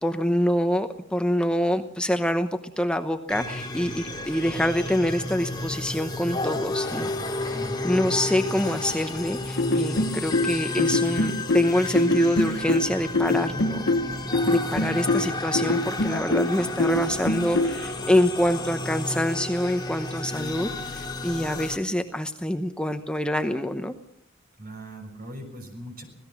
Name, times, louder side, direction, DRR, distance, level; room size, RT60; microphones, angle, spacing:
voice 1, 0.0-2.5 2.8-7.1 7.4-7.6 7.8-13.8 14.5-23.9, equal, 5° left, 7 dB, 0.9 m, -26 dB
sound 1, 3.3-21.8, left 2 dB, 20° left, 2.6 m, -32 dB
voice 2, 7.5-7.9 24.6-26.0, right 1 dB, 45° right, 5 dB, 6.1 m, -40 dB
sound 2, 9.6-17.8, left 2 dB, 60° left, 1.1 m, -24 dB
25.5 x 18.0 x 6.1 m, 0.71 s
head